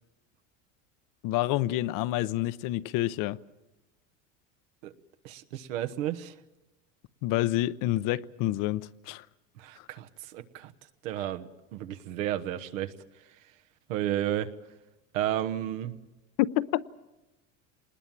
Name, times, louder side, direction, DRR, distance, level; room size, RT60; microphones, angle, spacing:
voice 1, 1.2-3.4 7.2-9.2 9.8-9.9 16.4-16.8, left 15 dB, 55° left, 0.7 m, -28 dB
voice 2, 5.2-6.3 9.6-10.7 11.0-12.9 13.9-14.5 15.1-15.9, right 12 dB, 90° right, 1.3 m, -32 dB
25.0 x 20.0 x 7.5 m
supercardioid pair, 125°, 38 cm